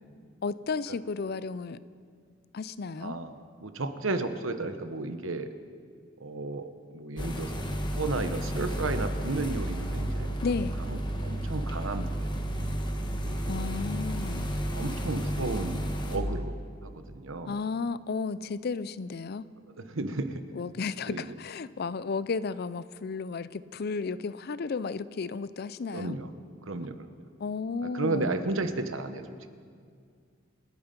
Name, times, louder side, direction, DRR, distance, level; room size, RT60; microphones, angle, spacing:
voice 1, 0.4-1.8 2.5-3.1 10.4-10.8 13.5-14.5 17.5-19.5 20.5-26.2 27.4-28.4, left 4 dB, 50° left, 16 dB, 0.5 m, -33 dB
voice 2, 3.0-3.4 3.6-5.5 6.2-7.6 7.9-10.3 10.8-12.3 13.2-13.6 14.7-16.5 16.8-17.5 19.8-20.4 21.1-21.3 25.9-26.3 26.7-27.2 27.9-29.5, right 2 dB, 80° right, 9 dB, 1.1 m, -33 dB
sound 1, 7.2-16.2, right 1 dB, 25° left, 1.3 m, -32 dB
26.5 x 9.5 x 5.3 m, 2.1 s
head